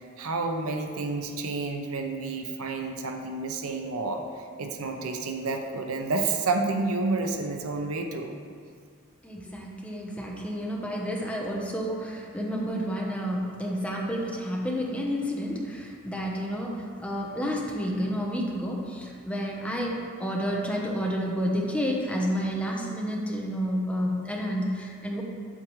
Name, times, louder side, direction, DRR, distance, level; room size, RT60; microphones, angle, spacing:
voice 1, 0.2-4.2 4.6-8.4, right 3 dB, 85° right, 4 dB, 0.7 m, -30 dB
voice 2, 9.2-25.2, equal, 5° left, -2 dB, 0.9 m, -30 dB
8.8 x 8.2 x 3.2 m, 2.1 s
head